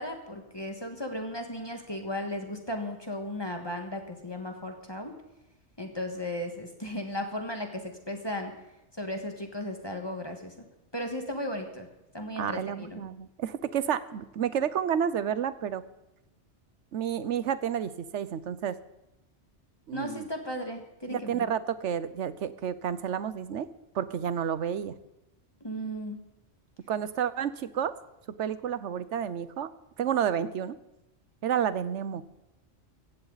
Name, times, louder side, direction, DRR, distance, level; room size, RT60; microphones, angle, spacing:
voice 1, 0.0-5.2 5.8-8.5 8.9-10.5 10.9-11.9 12.1-13.0 19.9-21.5 25.6-26.2, left 1 dB, 20° left, 4 dB, 1.7 m, -35 dB
voice 2, 12.4-15.8 16.9-18.8 19.9-20.3 21.1-23.7 23.9-24.9 26.9-27.9 28.4-29.7 30.0-30.8 31.4-32.2, right 8 dB, 80° right, 15 dB, 1.1 m, -30 dB
16.5 x 14.5 x 4.0 m, 0.91 s
omnidirectional pair, 1.2 m